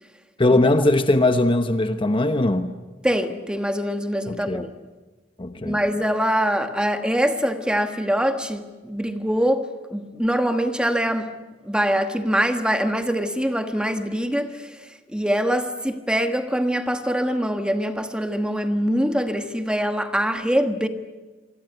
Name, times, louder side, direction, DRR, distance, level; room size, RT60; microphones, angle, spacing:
voice 1, 0.4-2.7 4.3-4.7 5.4-5.8, left 2 dB, 25° left, 1.0 m, -20 dB
voice 2, 3.0-4.7 5.6-11.3 11.6-14.7 15.1-20.9, equal, 5° right, 1.4 m, -23 dB
27.0 x 24.5 x 8.0 m
head